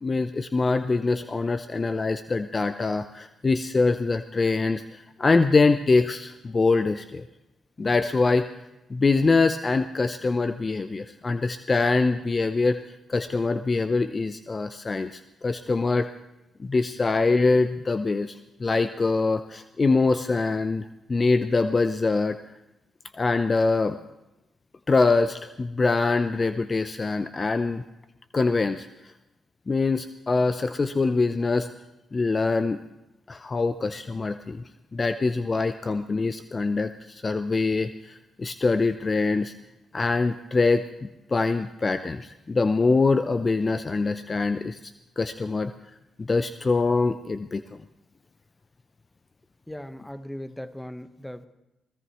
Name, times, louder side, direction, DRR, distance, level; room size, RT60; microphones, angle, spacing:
voice 1, 0.0-7.2 7.8-8.5 8.9-12.8 13.1-16.1 16.6-22.4 23.1-24.0 24.9-27.8 28.3-28.9 29.7-31.7 32.1-32.8 33.3-34.6 34.9-39.5 39.9-45.7 46.2-47.8, left 3 dB, 35° left, 11 dB, 0.6 m, -24 dB
voice 2, 49.7-51.5, left 1 dB, 10° left, 11 dB, 1.1 m, -38 dB
24.5 x 16.5 x 3.1 m, 0.93 s
hypercardioid pair, 45°, 0 cm